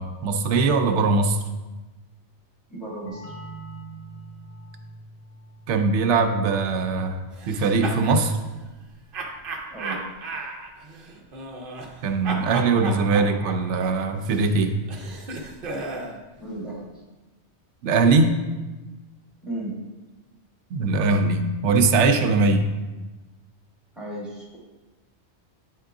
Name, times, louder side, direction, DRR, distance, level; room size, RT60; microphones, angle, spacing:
voice 1, 0.0-1.4 5.7-8.4 12.0-14.8 17.8-18.4 20.7-22.7, right 3 dB, 85° right, 6 dB, 0.9 m, -21 dB
voice 2, 2.7-3.4 9.7-10.0 16.4-16.9 19.4-19.7 23.9-24.5, right 1 dB, ahead, -5 dB, 1.8 m, -34 dB
sound 1, 3.1-8.5, right 2 dB, 30° left, 1.5 m, -45 dB
sound 2, 7.4-8.2 9.1-12.0 12.2-16.2, right 3 dB, 55° right, 0.8 m, -34 dB
8.7 x 3.7 x 3.5 m, 1.2 s
omnidirectional pair, 1.2 m